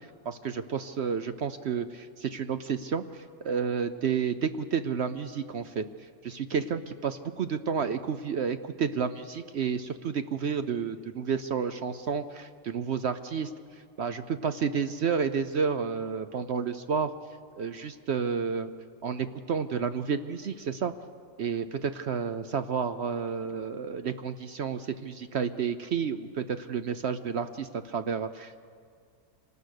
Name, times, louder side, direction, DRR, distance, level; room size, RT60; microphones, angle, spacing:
voice 1, 0.3-5.8 6.2-13.5 14.0-17.1 17.6-18.7 19.0-20.9 21.4-28.6, right 6 dB, 60° right, 10 dB, 0.7 m, -31 dB
26.5 x 19.0 x 6.6 m, 2.2 s
omnidirectional pair, 1.8 m